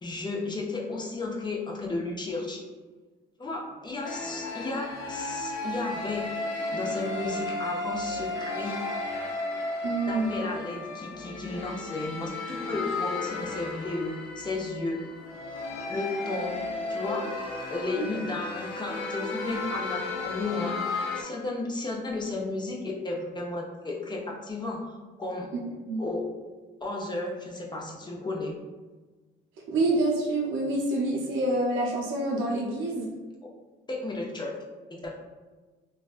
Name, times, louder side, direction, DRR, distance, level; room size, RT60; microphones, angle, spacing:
voice 1, 0.0-2.6 3.4-8.8 10.1-15.0 15.8-16.5 16.9-17.2 17.7-20.8 21.2-24.8 25.2-25.5 26.0-26.2 26.8-28.5 33.4-33.5 33.9-34.5 34.9-35.1, left 2 dB, 20° left, -2 dB, 0.6 m, -33 dB
sound 1, 4.0-21.2, left 2 dB, 85° left, 0.5 m, -34 dB
voice 2, 9.8-10.3 18.0-18.1 25.5-25.6 25.9-26.0 29.7-33.1, right 2 dB, 90° right, -3 dB, 0.7 m, -27 dB
3.1 x 2.2 x 2.4 m, 1.3 s
cardioid pair, 80°, 20 cm